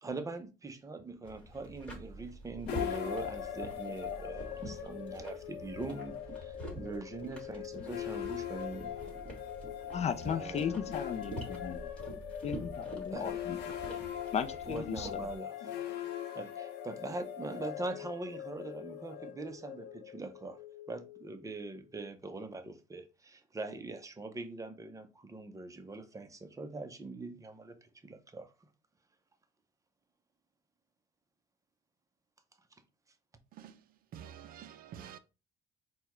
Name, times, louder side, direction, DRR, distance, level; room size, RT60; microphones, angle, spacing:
voice 1, 0.0-8.9 10.2-10.8 13.1-13.4 14.7-15.8 16.3-20.6 20.9-28.5, right 3 dB, 20° right, 0.7 m, -42 dB
sound 1, 1.2-15.4, right 1 dB, 5° left, 1.6 m, -46 dB
sound 2, 2.7-21.8, left 10 dB, 90° left, 0.7 m, -41 dB
voice 2, 9.9-11.9 12.4-13.8 14.3-15.2, left 7 dB, 40° left, 0.5 m, -36 dB
voice 3, 33.5-33.8 34.1-35.2, right 9 dB, 60° right, 0.4 m, -48 dB
4.4 x 2.2 x 4.2 m
cardioid pair, 110°, 17 cm